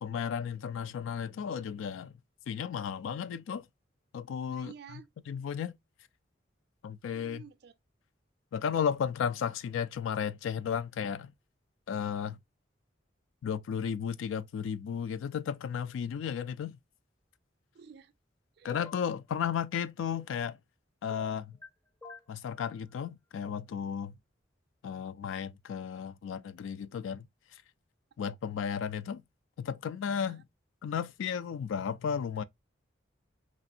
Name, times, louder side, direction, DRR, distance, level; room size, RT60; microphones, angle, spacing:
voice 1, 0.0-2.2 2.5-3.7 4.1-4.7 5.3-5.8 6.8-7.4 8.5-11.3 11.9-12.4 13.4-16.8 18.6-20.6 21.0-21.6 22.3-24.1 24.8-27.3 27.5-27.6 28.2-29.2 29.6-30.4 30.8-32.4, left 7 dB, 75° left, 0.3 m, -34 dB
voice 2, 4.5-5.1 7.1-7.7 17.7-18.1 18.6-18.7 30.3-30.4, right 7 dB, 55° right, 0.4 m, -51 dB
sound 1, 18.7-19.1 21.1-21.7 22.0-22.8, left 3 dB, 15° left, 0.5 m, -48 dB
3.1 x 2.5 x 2.6 m
head